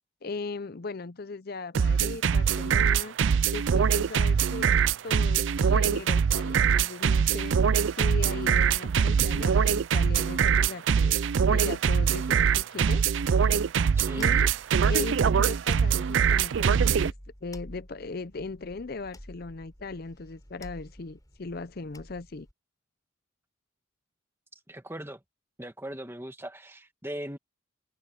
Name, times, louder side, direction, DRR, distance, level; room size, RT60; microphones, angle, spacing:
voice 1, 0.2-3.2 3.5-4.7 5.0-7.6 7.9-11.2 11.5-13.0 14.2-14.5 14.9-17.1 17.4-22.5, left 3 dB, 50° left, 0.6 m, -38 dB
sound 1, 1.7-17.1, right 7 dB, 65° right, 0.4 m, -23 dB
voice 2, 13.9-14.4 24.7-25.2 25.6-27.4, right 1 dB, 10° right, 2.1 m, -39 dB
sound 2, 15.5-22.5, equal, 15° left, 5.7 m, -49 dB
head